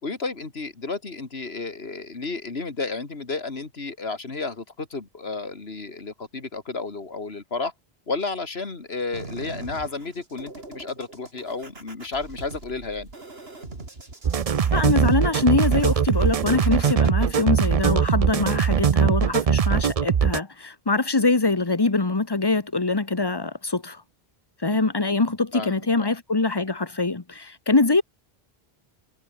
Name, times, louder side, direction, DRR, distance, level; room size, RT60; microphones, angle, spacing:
voice 1, 0.0-7.7 8.1-13.1 24.7-24.8 25.5-26.1, left 3 dB, 80° left, 2.8 m, -32 dB
sound 1, 9.1-17.1, right 2 dB, 75° right, 3.7 m, -42 dB
sound 2, 14.2-20.4, right 7 dB, 40° right, 0.6 m, -21 dB
voice 2, 14.7-24.0 24.6-28.0, left 3 dB, 25° left, 1.2 m, -23 dB
omnidirectional pair, 1.0 m